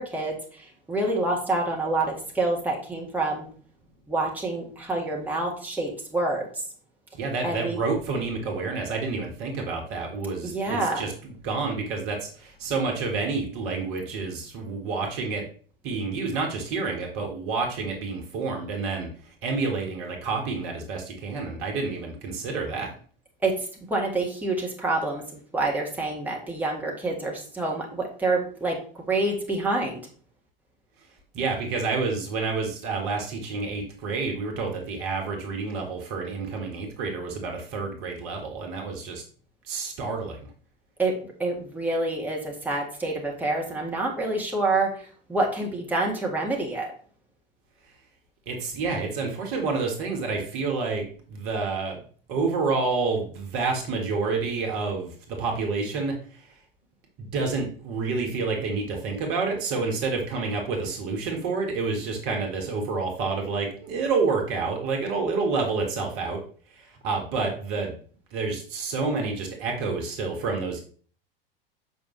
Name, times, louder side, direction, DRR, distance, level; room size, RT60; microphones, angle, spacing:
voice 1, 0.0-3.5 4.1-6.6 7.4-7.8 10.4-11.1 23.4-30.0 41.0-46.9, right 2 dB, 5° right, -2 dB, 1.8 m, -27 dB
voice 2, 7.1-15.4 15.8-19.1 19.4-22.9 31.3-39.2 39.7-40.4 48.5-52.0 52.3-56.1 57.2-66.4 66.8-68.0 68.3-70.8, right 4 dB, 45° right, 2 dB, 1.7 m, -29 dB
7.1 x 5.5 x 3.2 m, 0.44 s
figure-of-eight pair, 85°, 29 cm